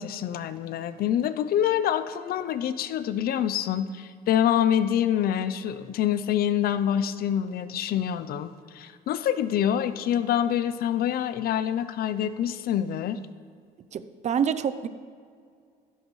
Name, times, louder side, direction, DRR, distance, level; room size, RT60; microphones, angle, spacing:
voice 1, 0.0-13.2, left 10 dB, 65° left, 13 dB, 0.6 m, -26 dB
voice 2, 13.9-14.9, right 7 dB, 45° right, 13 dB, 0.6 m, -27 dB
14.5 x 12.0 x 3.2 m, 2.2 s
cardioid pair, 110°, 17 cm